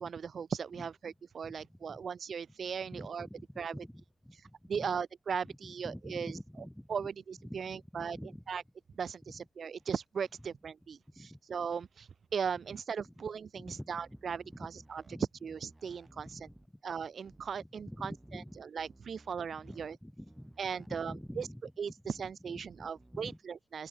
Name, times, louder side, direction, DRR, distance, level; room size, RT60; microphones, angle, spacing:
voice 1, 0.0-3.3 3.6-3.8 4.7-6.3 6.9-8.2 8.5-8.6 9.0-15.0 15.4-16.4 16.8-18.4 18.7-20.0 20.6-21.5 21.8-23.9, right 6 dB, 65° right, 0.6 m, -38 dB
voice 2, 1.4-2.0 2.8-4.9 5.4-7.1 7.4-8.4 11.2-11.4 13.0-13.1 13.5-14.7 15.1-15.2 15.8-16.8 17.6-18.6 19.6-21.7 22.1-23.4, equal, 5° left, 4.3 m, -48 dB
sound 1, 13.7-15.2 15.5-16.7 17.3-17.5 17.9-20.0 20.3-21.5 22.1-22.3 22.7-23.2, right 2 dB, 20° right, 1.9 m, -60 dB
open air
cardioid pair, 90°, 0 cm